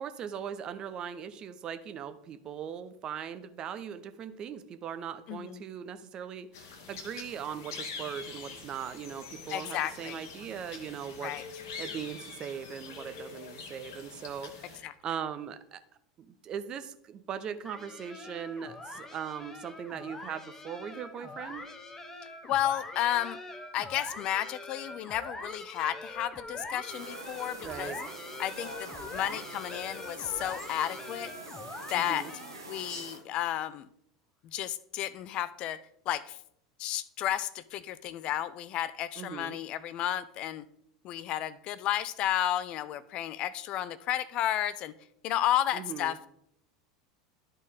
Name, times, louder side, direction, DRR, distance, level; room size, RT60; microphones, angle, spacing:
voice 1, 0.0-11.3 11.8-15.8 16.2-21.6 27.6-28.0 31.9-32.3 39.2-39.6 45.7-46.2, right 8 dB, 35° right, 10 dB, 0.6 m, -39 dB
voice 2, 5.3-5.6 9.5-10.2 11.2-11.4 14.8-14.9 22.5-23.4 23.7-27.9 28.4-31.3 31.9-32.3 32.7-33.9 34.4-35.8 36.1-36.4 36.8-40.7 41.0-44.9 45.2-46.3, left 12 dB, 40° left, 17 dB, 0.4 m, -32 dB
sound 1, 6.5-14.8, left 5 dB, 55° left, 1.1 m, -45 dB
sound 2, 17.6-32.8, left 2 dB, 15° left, 0.8 m, -43 dB
sound 3, 26.9-33.2, right 2 dB, 80° right, 1.5 m, -45 dB
12.0 x 4.1 x 3.6 m, 0.73 s
figure-of-eight pair, 80°, 2 cm